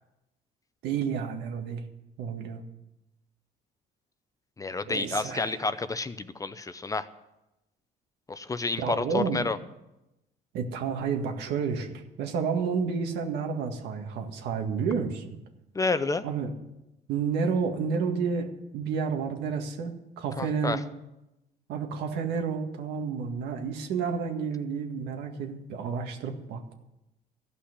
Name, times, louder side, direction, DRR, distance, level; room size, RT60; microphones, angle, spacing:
voice 1, 0.8-1.8 2.2-2.6 4.9-5.6 8.8-9.5 10.5-15.4 16.2-16.5 17.1-20.8 21.7-26.7, right 6 dB, 80° right, 4 dB, 1.8 m, -30 dB
voice 2, 4.6-7.1 8.3-9.6 15.7-16.2 20.4-20.8, left 3 dB, 20° left, 12 dB, 0.6 m, -30 dB
14.0 x 5.8 x 9.9 m, 0.93 s
cardioid pair, 110°, 17 cm